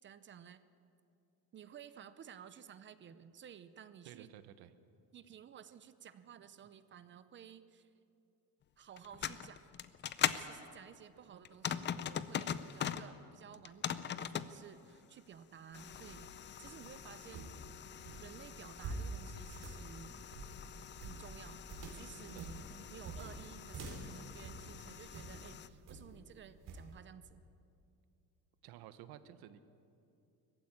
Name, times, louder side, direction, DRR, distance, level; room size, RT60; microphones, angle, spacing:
voice 1, 0.0-0.6 1.5-4.3 5.1-7.9 8.8-9.7 10.3-16.3 16.6-17.7 18.2-20.2 21.0-21.7 21.9-22.6 22.9-27.4, right 8 dB, 30° right, 13 dB, 0.6 m, -54 dB
voice 2, 4.0-4.7 22.3-22.5 28.6-29.6, right 11 dB, 85° right, 12 dB, 1.2 m, -53 dB
sound 1, 9.0-10.5 11.4-13.1 13.5-14.5 15.7-25.7, left 9 dB, 30° left, 0.6 m, -42 dB
sound 2, 15.7-25.4 25.9-26.2 26.7-26.9, right 3 dB, 60° right, 3.8 m, -47 dB
20.0 x 15.0 x 9.7 m, 2.7 s
cardioid pair, 165°, 36 cm